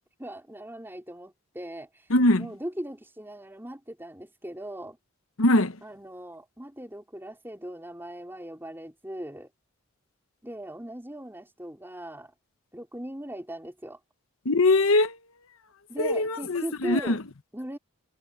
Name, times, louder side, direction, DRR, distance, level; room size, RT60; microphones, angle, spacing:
voice 1, 0.2-2.1 2.4-5.0 5.8-9.5 10.4-12.3 12.7-14.0 15.9-17.2 17.5-17.8, right 1 dB, 10° right, 4.6 m, -39 dB
voice 2, 2.1-2.5 5.4-5.8 14.4-15.2 16.0-17.2, left 2 dB, 65° left, 1.0 m, -22 dB
head